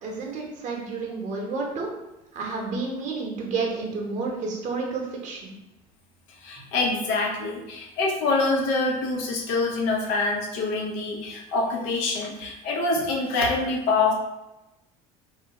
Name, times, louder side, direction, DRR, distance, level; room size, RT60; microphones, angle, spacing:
voice 1, 0.0-1.9 2.3-5.5, right 4 dB, 40° right, -1 dB, 0.8 m, -30 dB
voice 2, 6.4-14.1, left 3 dB, 70° left, 0 dB, 0.7 m, -25 dB
2.4 x 2.4 x 2.9 m, 0.96 s
hypercardioid pair, 80°, 19 cm